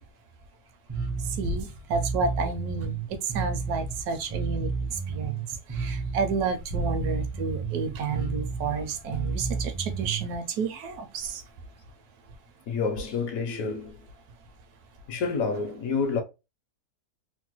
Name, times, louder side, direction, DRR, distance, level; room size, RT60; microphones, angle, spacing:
Bass guitar, 0.9-10.4, right 4 dB, 25° right, 0.3 m, -32 dB
voice 1, 1.4-11.4, right 4 dB, 75° right, 1.0 m, -31 dB
voice 2, 12.7-14.1 15.1-16.2, left 5 dB, 70° left, 0.9 m, -28 dB
3.0 x 2.1 x 2.8 m
omnidirectional pair, 1.7 m